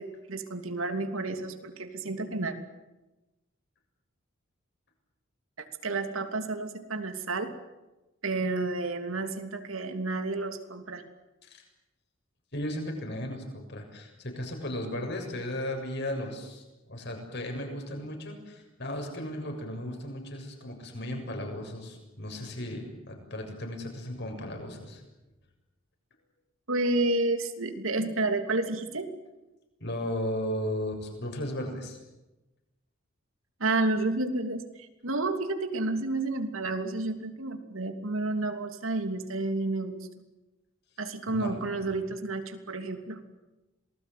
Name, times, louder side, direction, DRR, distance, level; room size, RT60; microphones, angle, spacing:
voice 1, 0.0-2.5 5.6-7.5 8.2-11.0 26.7-29.1 33.6-40.1 41.0-43.2, right 2 dB, 80° right, 7 dB, 2.9 m, -30 dB
voice 2, 12.5-25.0 29.8-32.0 41.3-41.9, left 1 dB, 55° left, 3 dB, 7.2 m, -35 dB
27.0 x 20.0 x 9.3 m, 1.0 s
head